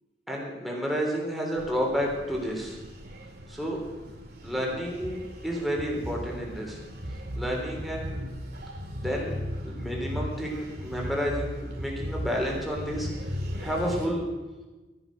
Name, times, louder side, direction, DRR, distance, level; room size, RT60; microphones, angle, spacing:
voice 1, 0.3-2.8 3.5-3.8 4.4-6.8 7.4-8.3 9.0-13.3 13.6-14.3, equal, ahead, -2 dB, 3.5 m, -31 dB
sound 1, 1.6-14.1, equal, 55° right, 2.4 m, -37 dB
13.0 x 11.0 x 6.3 m, 1.1 s
head